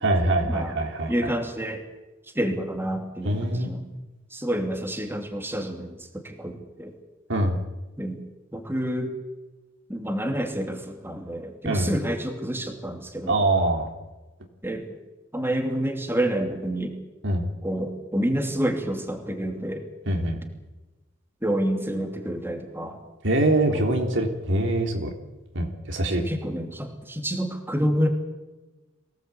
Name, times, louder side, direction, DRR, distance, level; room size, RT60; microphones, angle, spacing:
voice 1, 0.0-1.3 3.2-3.7 7.3-7.6 11.6-11.9 13.3-13.9 17.2-17.5 20.1-20.4 23.2-25.1 25.5-26.2, right 1 dB, 65° right, 3 dB, 3.6 m, -24 dB
voice 2, 1.1-1.8 2.3-3.8 4.3-6.9 8.0-8.2 8.5-9.1 9.9-13.4 14.6-14.8 15.3-16.9 17.6-19.8 21.4-23.0 23.7-24.0 26.2-28.1, equal, 10° right, 4 dB, 2.8 m, -28 dB
24.0 x 18.0 x 8.5 m, 1.1 s
head